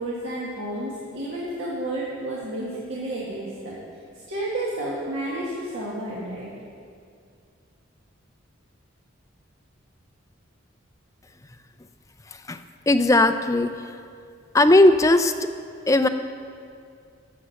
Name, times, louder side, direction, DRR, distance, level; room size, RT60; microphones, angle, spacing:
voice 1, 0.0-3.7 4.3-6.5, right 1 dB, 70° right, -6 dB, 1.7 m, -31 dB
voice 2, 12.9-13.7 14.5-15.3 15.9-16.1, left 2 dB, 15° left, 9 dB, 0.4 m, -17 dB
13.0 x 7.0 x 6.4 m, 2.3 s
head